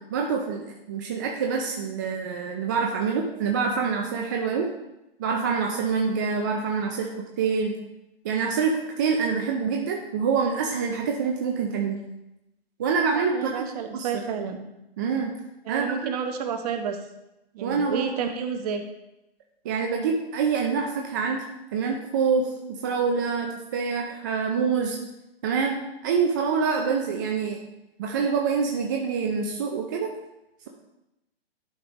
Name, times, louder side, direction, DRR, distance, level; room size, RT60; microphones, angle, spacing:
voice 1, 0.0-4.7 5.2-7.7 8.2-12.0 12.8-13.5 13.9-14.1 15.0-15.3 15.7-15.9 17.6-18.1 19.6-21.4 21.7-25.0 25.4-27.6 28.0-30.1, right 5 dB, 20° right, 1 dB, 0.4 m, -26 dB
voice 2, 13.1-14.6 15.7-17.0 17.5-18.8, right 6 dB, 40° right, 6 dB, 0.9 m, -30 dB
11.0 x 4.9 x 3.0 m, 0.91 s
hypercardioid pair, 140°, 31 cm